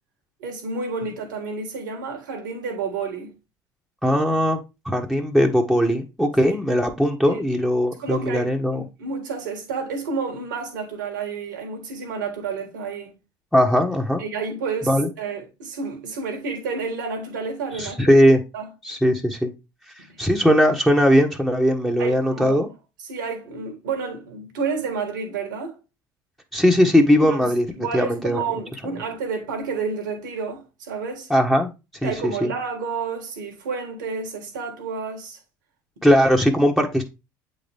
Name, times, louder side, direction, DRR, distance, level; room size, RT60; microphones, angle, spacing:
voice 1, 0.4-3.3 7.3-7.4 8.0-13.1 14.2-18.2 18.5-18.7 22.0-22.6 23.1-25.8 27.2-27.5 27.8-31.3 32.0-35.4, right 5 dB, 85° right, 1.7 m, -30 dB
voice 2, 4.0-4.6 4.8-8.8 13.5-14.2 14.9-15.1 17.7-18.4 18.8-19.5 20.2-22.7 26.5-27.7 27.9-28.4 31.3-31.7 32.0-32.1 32.4-32.5 36.0-37.0, equal, ahead, 1.3 m, -19 dB
8.3 x 4.0 x 3.5 m
hypercardioid pair, 70°, 10 cm